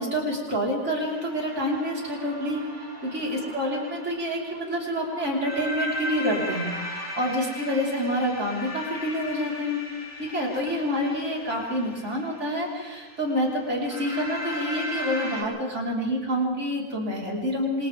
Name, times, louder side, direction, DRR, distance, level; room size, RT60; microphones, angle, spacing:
voice 1, 0.0-9.8 10.2-17.9, equal, 40° right, -3 dB, 5.1 m, -28 dB
sound 1, 1.0-15.4, equal, 10° left, 6.1 m, -37 dB
29.0 x 25.5 x 3.7 m, 1.3 s
omnidirectional pair, 1.9 m